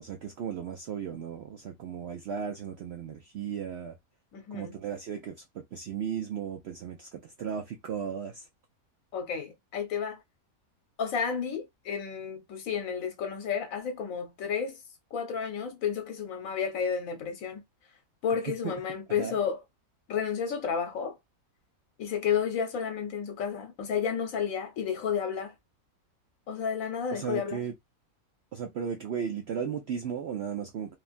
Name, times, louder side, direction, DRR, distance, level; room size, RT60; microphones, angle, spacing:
voice 1, 0.0-3.9 4.5-8.5 18.6-18.7 19.2-19.4 27.1-27.7 28.5-31.0, right 7 dB, 70° right, 0.6 m, -35 dB
voice 2, 4.3-4.7 9.1-10.2 11.0-14.8 15.1-17.6 18.2-19.6 20.1-21.2 22.0-25.5 26.5-27.6, left 7 dB, 65° left, 1.2 m, -31 dB
3.1 x 2.2 x 2.4 m
omnidirectional pair, 1.6 m